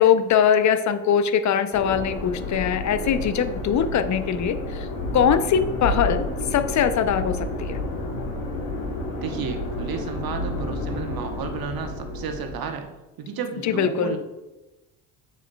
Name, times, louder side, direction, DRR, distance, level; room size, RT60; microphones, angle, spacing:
voice 1, 0.0-4.9 5.1-6.2 6.5-7.8 13.6-14.2, left 8 dB, 35° left, 11 dB, 0.6 m, -21 dB
sound 1, 1.7-12.7, left 2 dB, 70° left, 1.5 m, -30 dB
voice 2, 9.2-12.9 13.2-14.2, right 6 dB, 45° right, 6 dB, 1.1 m, -32 dB
7.3 x 7.2 x 2.3 m, 1.1 s
hypercardioid pair, 50°, 49 cm